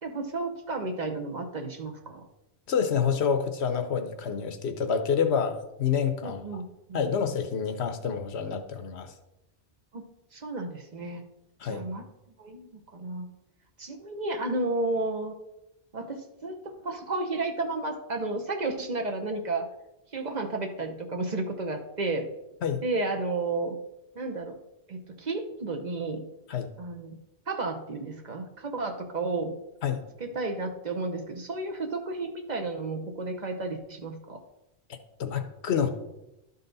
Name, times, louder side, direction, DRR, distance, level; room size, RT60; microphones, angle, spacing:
voice 1, 0.0-2.3 6.2-7.0 9.9-10.0 10.3-11.2 11.7-12.0 12.4-13.3 13.8-15.3 15.9-19.7 20.1-22.3 22.8-23.8 24.2-24.5 24.9-26.3 26.8-27.2 27.5-29.5 30.2-34.4, right 2 dB, 45° right, 4 dB, 0.8 m, -32 dB
voice 2, 2.7-6.4 6.9-9.1 11.6-11.8 22.6-22.8 26.5-26.7 29.8-30.0 35.2-35.9, left 7 dB, 80° left, 7 dB, 1.0 m, -28 dB
12.0 x 4.1 x 3.9 m, 0.91 s
omnidirectional pair, 1.1 m